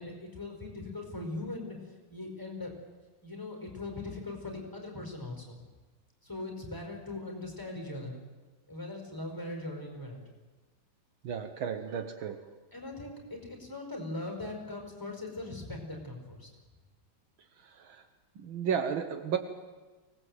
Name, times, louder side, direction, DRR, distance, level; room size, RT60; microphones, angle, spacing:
voice 1, 0.0-1.8 2.1-2.7 3.2-5.6 6.2-8.2 8.7-10.2 12.7-16.5, left 2 dB, 10° left, 2 dB, 4.9 m, -40 dB
voice 2, 11.2-12.5 17.6-18.0 18.4-19.4, right 7 dB, 70° right, 8 dB, 1.9 m, -33 dB
24.5 x 19.0 x 8.0 m, 1.3 s
omnidirectional pair, 2.4 m